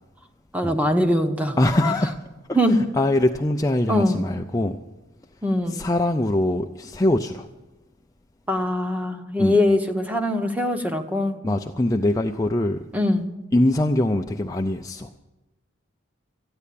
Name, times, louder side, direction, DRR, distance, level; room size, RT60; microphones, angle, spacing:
voice 1, 0.5-1.6 1.8-1.9 2.5-2.8 3.9-4.3 5.4-5.8 8.5-11.4 12.9-13.3, left 1 dB, 5° right, 6 dB, 0.9 m, -22 dB
voice 2, 1.6-2.1 2.5-4.8 5.7-7.5 9.4-9.6 11.4-12.8 13.5-15.1, left 1 dB, 15° left, 4 dB, 0.4 m, -23 dB
14.0 x 9.7 x 8.4 m, 1.1 s
head